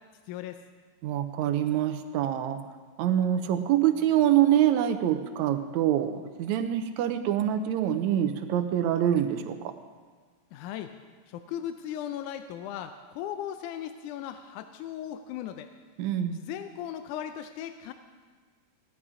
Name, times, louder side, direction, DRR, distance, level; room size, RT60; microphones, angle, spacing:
voice 1, 0.3-0.6 10.5-10.9 11.3-15.7 16.3-17.9, left 10 dB, 85° left, 9 dB, 2.1 m, -37 dB
voice 2, 1.0-2.6 3.0-9.7 16.0-16.4, right 11 dB, 80° right, 8 dB, 1.9 m, -25 dB
16.5 x 11.0 x 4.9 m, 1.5 s
omnidirectional pair, 3.4 m